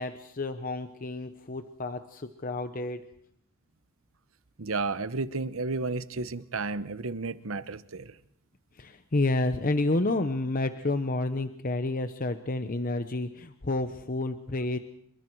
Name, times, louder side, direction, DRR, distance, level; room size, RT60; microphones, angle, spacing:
voice 1, 0.0-3.0 8.7-14.8, left 2 dB, 40° left, 9 dB, 0.8 m, -30 dB
voice 2, 4.6-8.1, right 3 dB, 70° right, 13 dB, 1.0 m, -32 dB
27.0 x 23.0 x 4.7 m, 0.70 s
head